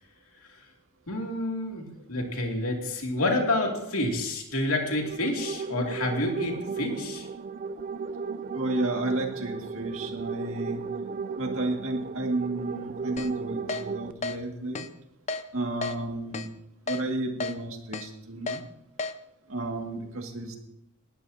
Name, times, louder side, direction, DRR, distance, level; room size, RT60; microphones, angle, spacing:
voice 1, 1.1-7.3, left 1 dB, 80° left, 1 dB, 2.6 m, -28 dB
sound 1, 4.7-14.1, right 5 dB, 40° right, 0.4 m, -35 dB
voice 2, 8.5-10.8 11.4-14.9 15.5-16.5 16.9-18.6 19.5-20.6, right 2 dB, 65° right, 2 dB, 2.1 m, -32 dB
Keyboard (musical), 13.2-13.3 13.7-13.8 14.2-14.4 14.8-14.9 15.3-15.4 15.8-16.0 16.3-16.5 16.9-17.0 17.4-17.5 17.9-18.1 18.5-18.6 19.0-19.1, left 3 dB, 30° left, 0.5 m, -32 dB
19.5 x 13.0 x 2.8 m, 0.84 s
head